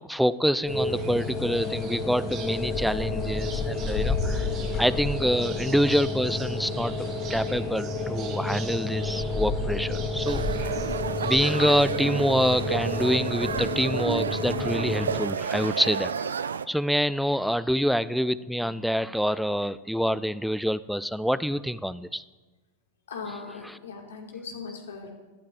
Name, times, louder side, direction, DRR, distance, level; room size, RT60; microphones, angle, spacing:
voice 1, 0.0-4.5 4.8-6.9 7.3-10.9 11.2-16.4 16.7-22.2, equal, ahead, 17 dB, 0.3 m, -26 dB
sound 1, 0.6-15.1, left 3 dB, 35° left, 3.2 m, -30 dB
sound 2, 1.0-11.9, right 7 dB, 35° right, 1.3 m, -45 dB
sound 3, 10.3-16.7, right 6 dB, 70° right, 0.4 m, -31 dB
voice 2, 23.1-25.1, left 5 dB, 65° left, 2 dB, 2.1 m, -39 dB
17.5 x 12.0 x 2.6 m, 1.3 s
figure-of-eight pair, 90°, 0 cm